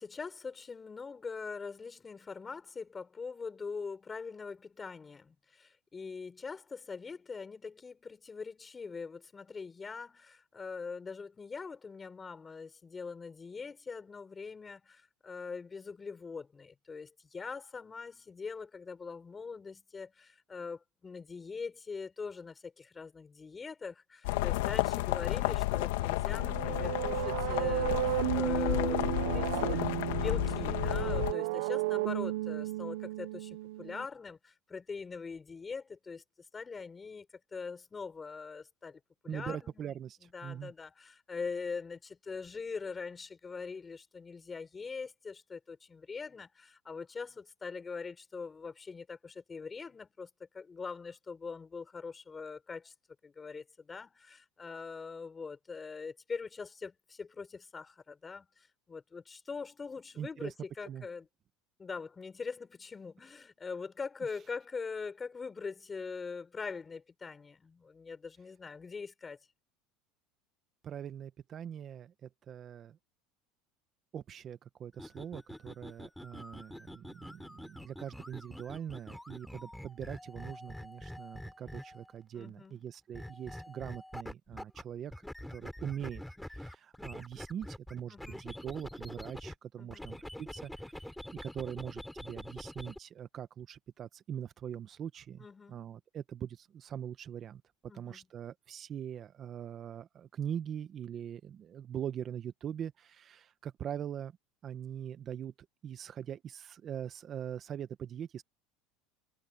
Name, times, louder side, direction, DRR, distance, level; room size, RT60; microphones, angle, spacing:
voice 1, 0.0-36.2 36.5-37.3 37.5-39.9 40.3-50.3 50.5-52.9 53.2-61.3 61.8-69.4 82.3-82.8 88.1-88.4 89.8-90.1 95.4-95.8 97.9-98.2, left 5 dB, 20° left, 5.1 m, -42 dB
sound 1, 24.2-31.3, left 17 dB, 85° left, 1.4 m, -32 dB
sound 2, 26.3-34.1, right 18 dB, 85° right, 0.5 m, -34 dB
voice 2, 39.3-40.7 60.2-60.5 60.8-61.1 70.8-73.0 74.1-85.1 85.5-91.1 91.4-97.6 97.9-104.3 104.6-105.5 105.8-108.4, right 9 dB, 35° right, 0.9 m, -42 dB
sound 3, 74.9-82.1 83.1-84.8 85.1-89.5 89.9-93.0, left 1 dB, 5° left, 4.2 m, -46 dB
supercardioid pair, 125°, 0 cm